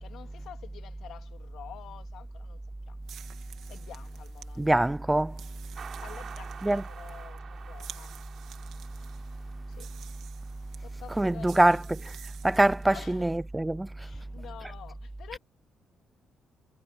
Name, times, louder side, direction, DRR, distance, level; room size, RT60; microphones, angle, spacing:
voice 1, 0.0-3.0 3.7-4.8 6.0-8.1 9.7-9.9 10.8-11.8 12.9-13.3 14.0-15.4, left 10 dB, 75° left, 2.3 m, -49 dB
sound 1, 3.0-12.9, right 10 dB, 75° right, 2.3 m, -51 dB
voice 2, 4.6-5.4 6.6-6.8 11.2-12.0 12.4-13.9, right 1 dB, 10° right, 0.4 m, -24 dB
sound 2, 5.7-10.6, right 7 dB, 50° right, 7.3 m, -48 dB
cardioid pair, 90°, 0 cm